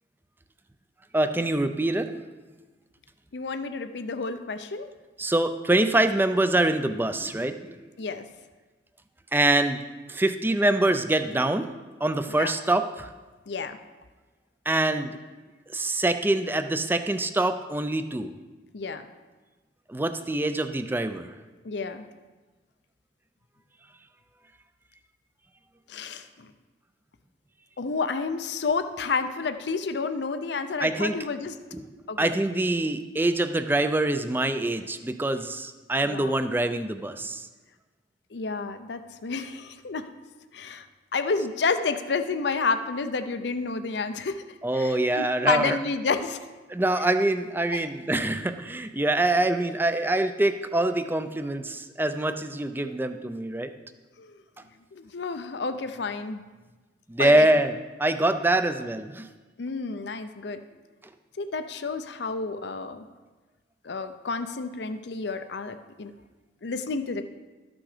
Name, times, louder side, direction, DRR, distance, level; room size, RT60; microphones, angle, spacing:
voice 1, 1.1-2.2 5.2-7.8 9.3-9.8 10.1-11.7 12.0-13.1 14.7-15.2 15.7-18.3 19.9-21.3 30.8-31.1 31.7-31.8 32.2-37.5 44.6-45.8 46.7-53.7 57.1-57.7 58.0-59.3, right 2 dB, 10° right, 9 dB, 0.4 m, -25 dB
voice 2, 3.3-4.9 8.0-8.3 12.3-12.5 13.5-13.8 18.7-19.0 21.6-22.1 25.9-26.5 27.8-31.6 32.1-32.3 36.0-36.4 38.3-40.1 40.5-40.9 41.1-44.4 44.7-46.4 47.7-47.9 54.2-54.4 54.9-56.4 57.2-57.5 59.6-60.6 61.4-63.0 63.8-66.1 66.6-67.2, left 4 dB, 65° left, 10 dB, 0.6 m, -30 dB
12.5 x 6.1 x 5.0 m, 1.3 s
head